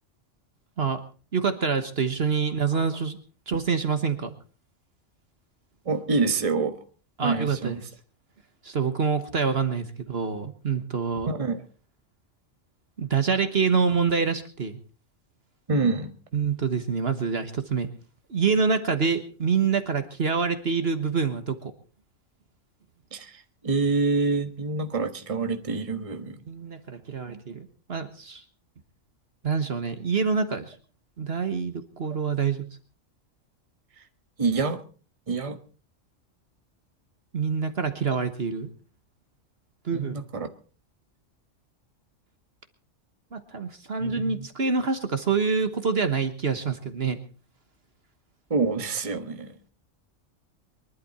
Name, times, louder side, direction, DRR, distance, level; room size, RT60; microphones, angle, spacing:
voice 1, 1.3-3.2 3.5-4.3 7.2-7.8 8.6-11.3 13.0-14.8 16.3-17.9 18.3-21.7 26.5-28.4 29.4-30.8 31.2-32.7 37.3-38.7 39.8-40.2 43.3-47.2, right 5 dB, 55° right, 9 dB, 1.5 m, -26 dB
voice 2, 5.8-6.8 7.2-7.8 11.2-11.6 15.7-16.2 23.1-26.4 34.0-34.1 34.4-34.8 35.3-35.6 39.9-40.5 44.0-44.5 48.5-49.6, right 4 dB, 25° right, 7 dB, 1.3 m, -27 dB
23.5 x 11.5 x 4.3 m, 0.37 s
omnidirectional pair, 1.3 m